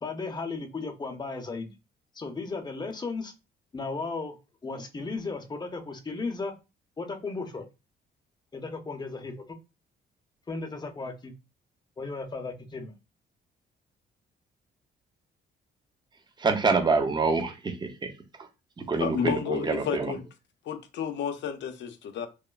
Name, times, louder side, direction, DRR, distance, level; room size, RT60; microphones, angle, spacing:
voice 1, 0.0-1.7 2.1-3.3 3.7-4.4 4.6-6.5 7.0-7.6 8.5-9.6 10.5-11.3 12.0-12.9, left 3 dB, 20° left, 0.6 m, -35 dB
voice 2, 16.4-18.5 18.9-20.1, right 4 dB, 20° right, 0.5 m, -27 dB
voice 3, 19.0-20.2 20.7-22.3, left 7 dB, 65° left, 0.5 m, -31 dB
3.0 x 2.0 x 2.3 m
cardioid pair, 90°, 20 cm